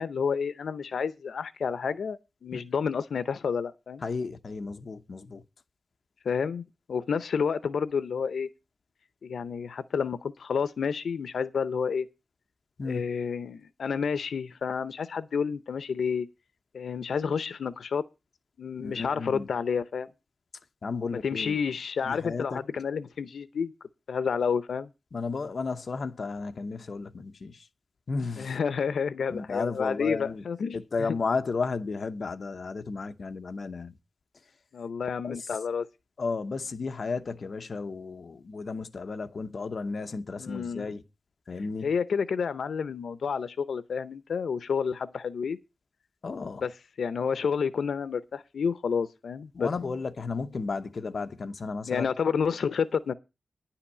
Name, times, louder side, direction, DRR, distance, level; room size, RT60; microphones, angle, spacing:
voice 1, 0.0-4.0 6.2-8.5 9.2-12.1 12.8-16.3 16.7-18.0 18.6-20.1 21.2-23.7 24.1-24.9 28.4-30.8 34.7-35.9 40.4-40.9 41.8-45.6 46.6-46.7 47.0-49.7 51.9-53.1, left 6 dB, 90° left, 0.6 m, -30 dB
voice 2, 4.0-5.4 12.8-13.0 18.8-19.5 20.8-21.6 22.0-22.6 25.1-27.7 28.1-28.6 29.3-30.4 30.7-33.9 35.2-35.5 36.2-41.0 41.5-41.9 46.2-46.6 49.5-52.1, left 4 dB, 50° left, 0.8 m, -33 dB
10.5 x 5.8 x 8.3 m
wide cardioid pair, 145°, 0 cm